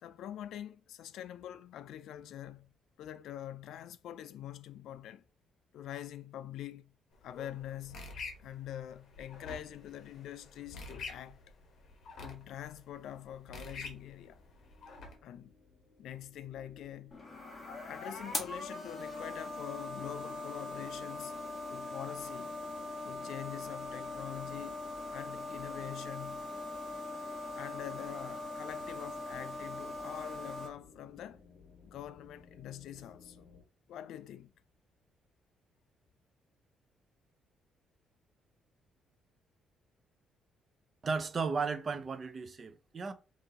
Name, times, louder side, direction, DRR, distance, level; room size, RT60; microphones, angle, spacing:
voice 1, 0.0-2.7 3.0-5.2 5.7-6.9 7.2-11.4 12.2-14.4 15.2-15.5 16.0-17.2 17.8-21.4 21.7-22.6 23.0-24.8 25.1-26.5 27.6-31.5 31.8-33.5 33.9-34.5, left 11 dB, 75° left, 0.3 m, -45 dB
sound 1, 7.1-15.2, left 3 dB, 60° left, 1.2 m, -48 dB
sound 2, 14.3-33.6, left 4 dB, 40° left, 1.7 m, -60 dB
sound 3, 17.1-30.7, left 2 dB, 20° left, 1.3 m, -41 dB
voice 2, 41.0-43.1, right 4 dB, 35° right, 0.5 m, -34 dB
5.3 x 2.6 x 2.8 m
cardioid pair, 135°, 0 cm